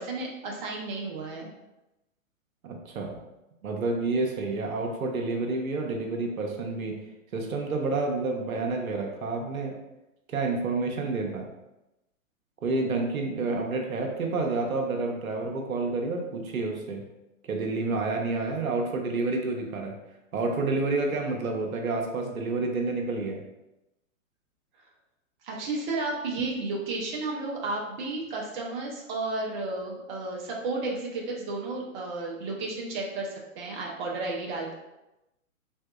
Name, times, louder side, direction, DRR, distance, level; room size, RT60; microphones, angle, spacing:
voice 1, 0.0-1.5 25.4-34.7, right 3 dB, 35° right, -2 dB, 0.7 m, -32 dB
voice 2, 2.6-3.2 3.6-7.0 7.3-9.7 10.3-11.5 12.6-17.0 17.4-20.0 20.3-23.4, right 3 dB, 80° right, 1 dB, 0.8 m, -29 dB
3.4 x 2.6 x 2.3 m, 0.94 s
hypercardioid pair, 130°, 41 cm